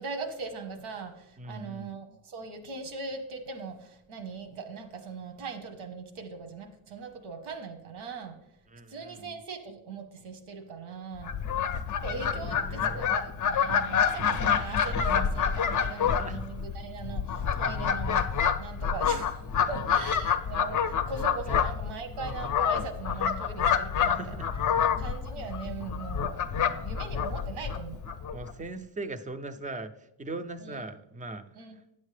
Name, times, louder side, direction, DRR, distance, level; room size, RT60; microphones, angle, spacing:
voice 1, 0.0-8.4 8.9-11.3 11.9-24.4 25.0-28.0 30.6-30.8 31.5-31.8, right 4 dB, 90° right, 7 dB, 1.2 m, -40 dB
voice 2, 1.4-1.9 8.7-9.3 12.3-13.1 15.9-16.4 19.6-19.7 23.1-23.2 24.1-24.5 28.3-31.8, right 2 dB, 20° right, 10 dB, 0.3 m, -40 dB
Fowl, 11.2-28.5, left 7 dB, 40° left, 0.5 m, -28 dB
sound 1, 13.5-14.8, right 6 dB, 70° right, 0.6 m, -44 dB
9.7 x 7.3 x 3.3 m, 0.84 s
wide cardioid pair, 145°, 48 cm